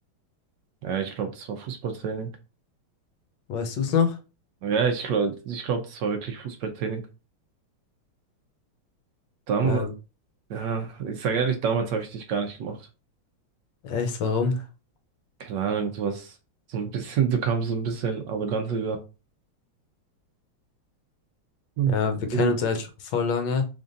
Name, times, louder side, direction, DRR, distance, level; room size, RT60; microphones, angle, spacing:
voice 1, 0.8-2.3 4.6-7.0 9.5-9.9 10.5-12.8 15.4-16.3 16.7-19.0 21.8-22.0 22.3-22.6, right 6 dB, 65° right, 1.2 m, -27 dB
voice 2, 3.5-4.2 9.6-9.9 13.8-14.6 21.9-23.7, left 5 dB, 70° left, 1.3 m, -25 dB
3.9 x 3.4 x 2.6 m
omnidirectional pair, 2.2 m